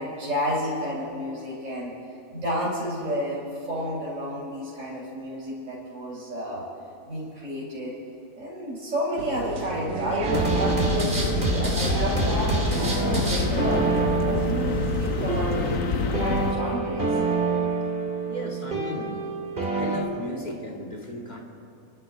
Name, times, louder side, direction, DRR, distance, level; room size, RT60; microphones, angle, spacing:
voice 1, 0.0-2.0 2.3-6.7 7.1-7.9 8.3-13.9 14.2-17.2, equal, 55° right, -8 dB, 4.6 m, -31 dB
sound 1, 9.2-15.8, right 5 dB, 90° right, 1.5 m, -35 dB
sound 2, 10.2-20.0, right 4 dB, 35° right, 2.4 m, -27 dB
sound 3, 10.3-16.5, left 5 dB, 75° left, 1.4 m, -28 dB
voice 2, 18.3-19.3 19.7-21.4, left 1 dB, 30° left, -1 dB, 2.1 m, -35 dB
29.5 x 12.0 x 3.9 m, 2.7 s
omnidirectional pair, 1.6 m